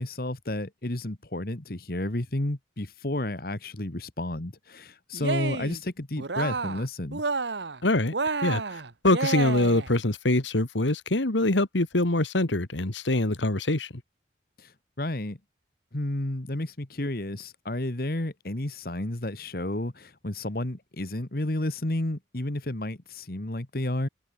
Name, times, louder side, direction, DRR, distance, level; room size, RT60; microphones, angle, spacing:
voice 1, 0.0-7.2 14.6-15.4 15.9-24.1, left 1 dB, 55° left, 1.7 m, -31 dB
Cheering, 5.1-5.8 6.2-6.9 7.1-7.8 8.1-9.9, right 4 dB, 75° right, 1.3 m, -30 dB
voice 2, 7.8-8.1 8.4-13.9, left 2 dB, 90° left, 2.0 m, -24 dB
head